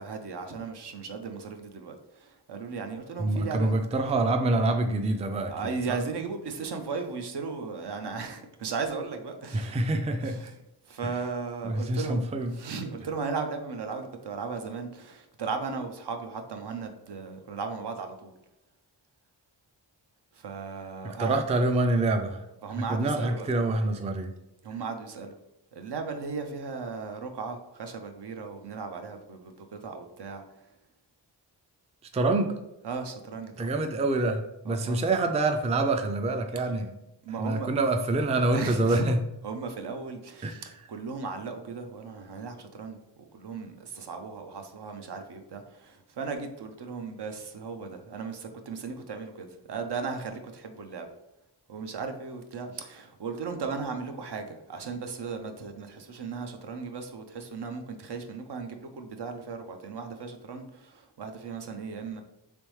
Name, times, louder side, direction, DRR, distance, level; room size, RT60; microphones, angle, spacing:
voice 1, 0.0-3.7 5.5-9.8 10.2-10.5 10.9-12.2 12.5-18.3 20.3-21.4 22.6-23.5 24.6-25.4 25.7-30.7 32.8-33.7 34.7-35.0 37.2-37.7 38.5-39.1 39.4-43.0 43.3-51.1 51.7-62.2, right 5 dB, 65° right, 5 dB, 0.6 m, -36 dB
voice 2, 3.2-6.0 9.5-10.5 11.6-12.5 21.0-24.3 32.1-32.5 33.6-36.9 37.4-39.2 40.4-40.6, right 2 dB, 15° right, 6 dB, 0.3 m, -26 dB
3.4 x 3.0 x 3.1 m, 0.90 s
cardioid pair, 60°, 43 cm